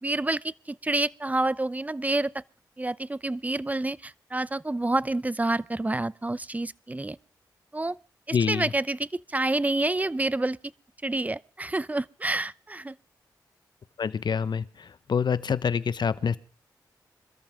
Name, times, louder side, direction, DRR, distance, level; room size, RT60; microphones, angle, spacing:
voice 1, 0.0-2.4 2.8-7.2 7.7-8.0 8.3-10.6 11.0-12.9, right 2 dB, 20° right, 0.8 m, -28 dB
voice 2, 8.3-8.7 14.0-14.6 15.1-16.4, left 6 dB, 70° left, 1.2 m, -26 dB
26.5 x 13.5 x 3.7 m
cardioid pair, 50°, 8 cm